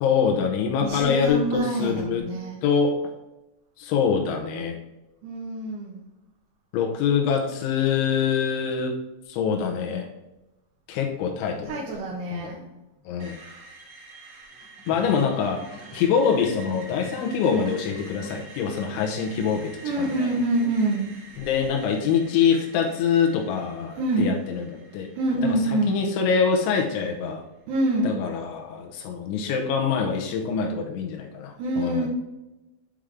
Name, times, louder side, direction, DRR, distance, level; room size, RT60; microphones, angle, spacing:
voice 1, 0.0-2.2 2.6-2.9 3.8-4.8 6.7-9.0 9.3-10.1 10.9-11.8 12.3-12.5 13.1-13.3 14.9-15.6 15.9-20.3 21.4-24.7 24.9-25.1 25.4-25.6 25.9-27.4 28.0-32.1, left 6 dB, 90° left, 2 dB, 3.2 m, -24 dB
voice 2, 0.8-2.6 5.2-6.0 11.6-12.7 19.8-21.2 24.0-24.4 25.2-26.0 27.7-28.1 31.6-32.1, right 1 dB, 75° right, -5 dB, 3.4 m, -26 dB
Screech, 13.2-27.1, right 3 dB, 50° right, 2.3 m, -47 dB
sound 1, 14.5-18.8 20.0-20.4, left 2 dB, 30° left, 1.6 m, -44 dB
9.2 x 4.9 x 3.5 m, 1.0 s
omnidirectional pair, 5.3 m